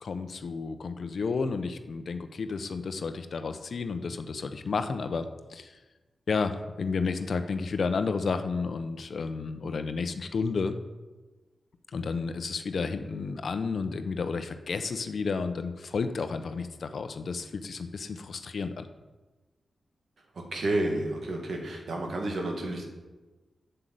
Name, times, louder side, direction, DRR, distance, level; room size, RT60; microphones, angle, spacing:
voice 1, 0.0-5.8 6.3-10.8 11.9-18.9, left 4 dB, 70° left, 9 dB, 0.8 m, -31 dB
voice 2, 20.5-22.8, right 1 dB, 75° right, 1 dB, 2.1 m, -30 dB
7.8 x 6.8 x 7.7 m, 1.2 s
cardioid pair, 45°, 0 cm